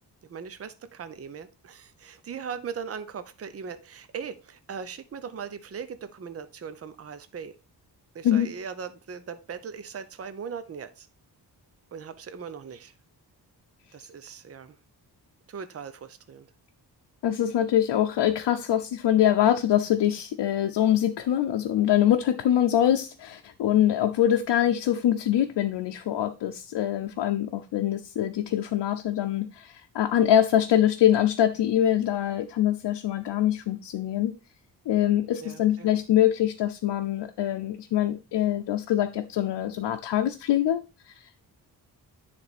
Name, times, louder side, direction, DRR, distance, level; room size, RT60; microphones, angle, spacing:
voice 1, 0.3-7.5 8.1-11.1 11.9-12.9 13.9-14.8 15.5-16.5 35.4-36.0, right 6 dB, 35° right, 11 dB, 0.7 m, -39 dB
voice 2, 17.2-34.3 34.9-40.8 41.1-41.2, left 11 dB, 85° left, 4 dB, 0.7 m, -24 dB
9.8 x 3.5 x 4.1 m, 0.31 s
wide cardioid pair, 120°, 41 cm